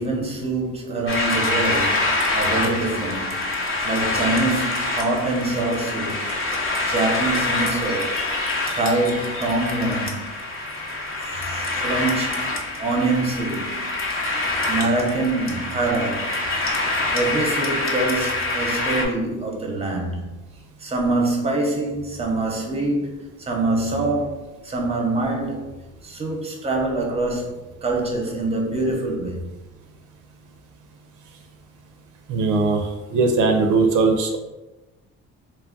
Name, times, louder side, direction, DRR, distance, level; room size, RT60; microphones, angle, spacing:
voice 1, 0.0-6.2 6.9-8.2 8.7-10.3 11.2-13.9 14.7-16.4 16.7-16.8 17.1-20.3 20.8-25.7 26.0-29.5, right 2 dB, 20° right, 0.7 m, -25 dB
sound 1, 1.1-19.1, left 2 dB, 45° left, 0.6 m, -25 dB
voice 2, 32.3-34.4, right 3 dB, 85° right, 0.5 m, -19 dB
2.3 x 2.0 x 3.7 m
cardioid pair, 90°, 30 cm